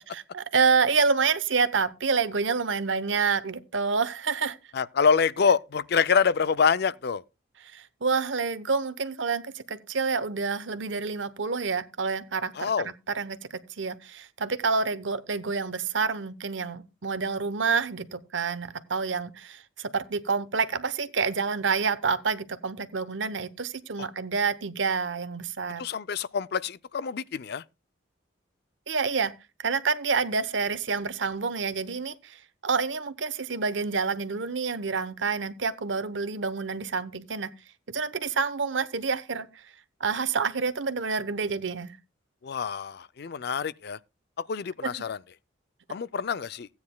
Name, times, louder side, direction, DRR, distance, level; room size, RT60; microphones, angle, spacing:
voice 1, 0.1-4.6 7.6-13.4 13.8-25.8 28.9-29.3 29.6-37.5 37.9-39.5 40.0-42.0 44.8-44.9, right 5 dB, 70° right, 0.9 m, -28 dB
voice 2, 4.7-7.2 12.6-12.9 25.8-27.6 42.4-44.0 44.5-45.2 45.9-46.7, left 6 dB, 55° left, 0.4 m, -26 dB
16.0 x 9.5 x 2.2 m
head